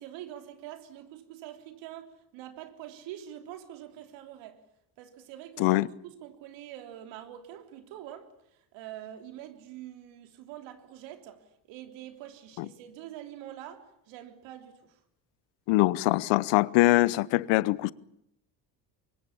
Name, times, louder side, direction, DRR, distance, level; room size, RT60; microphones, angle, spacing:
voice 1, 0.0-4.6 5.0-5.8 6.0-8.3 8.7-11.4 11.7-14.8, right 12 dB, 80° right, 3.4 m, -45 dB
voice 2, 5.6-5.9 12.6-12.7 15.7-17.9, left 19 dB, 80° left, 0.9 m, -23 dB
24.0 x 22.5 x 8.6 m
supercardioid pair, 70°, 44 cm